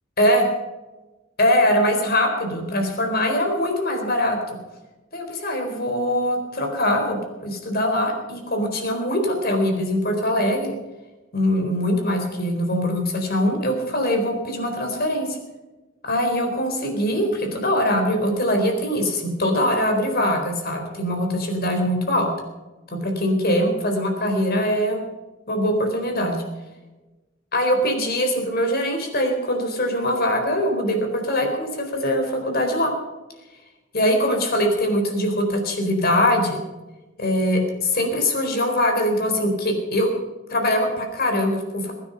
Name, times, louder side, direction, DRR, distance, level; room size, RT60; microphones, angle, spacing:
voice 1, 1.4-4.4 5.1-7.2 7.4-10.7 11.3-15.3 16.0-22.3 22.9-25.0 25.5-26.4 27.5-32.9 33.9-36.6 37.2-40.1 40.5-41.9, left 1 dB, 50° left, 3 dB, 4.2 m, -22 dB
22.0 x 9.8 x 5.8 m, 1.1 s
head